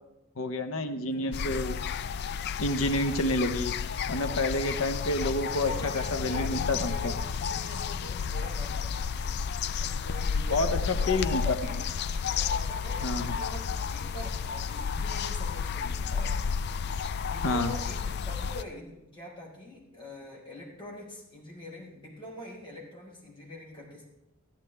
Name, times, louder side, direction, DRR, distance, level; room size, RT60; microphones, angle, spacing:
voice 1, 0.4-1.7 2.6-3.7 4.1-7.1 10.5-10.7 11.1-11.6 13.0-13.3 17.4-17.7, left 2 dB, 65° left, 8 dB, 0.8 m, -29 dB
voice 2, 1.1-1.7 4.0-4.5 5.5-9.0 9.8-11.9 12.3-16.4 17.2-24.0, left 1 dB, 25° left, -4 dB, 4.2 m, -44 dB
sound 1, 1.3-18.6, left 6 dB, 50° left, 0.3 m, -32 dB
14.5 x 11.5 x 3.3 m, 0.93 s
head